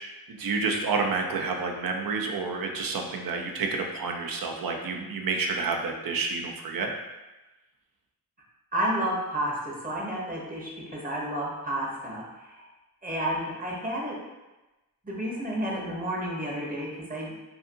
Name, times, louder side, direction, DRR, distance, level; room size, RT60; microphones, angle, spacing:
voice 1, 0.3-6.9, right 4 dB, 60° right, 2 dB, 0.5 m, -29 dB
voice 2, 8.7-12.7 13.0-14.2 15.0-17.3, right 1 dB, 20° right, -4 dB, 0.8 m, -31 dB
2.5 x 2.5 x 2.5 m, 1.1 s
cardioid pair, 55°, 39 cm